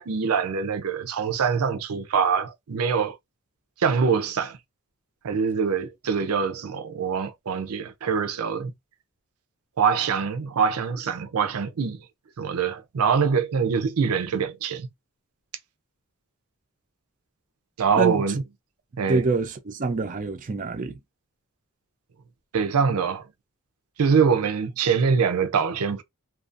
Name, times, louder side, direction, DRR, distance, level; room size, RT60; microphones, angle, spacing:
voice 1, 0.0-3.1 3.8-4.6 5.2-8.7 9.8-12.0 12.4-14.9 17.8-18.4 19.0-19.2 22.5-23.2 24.0-26.0, right 6 dB, 85° right, 0.5 m, -24 dB
voice 2, 18.0-18.3 19.1-21.0, right 3 dB, 35° right, 0.4 m, -26 dB
2.5 x 2.3 x 2.4 m
head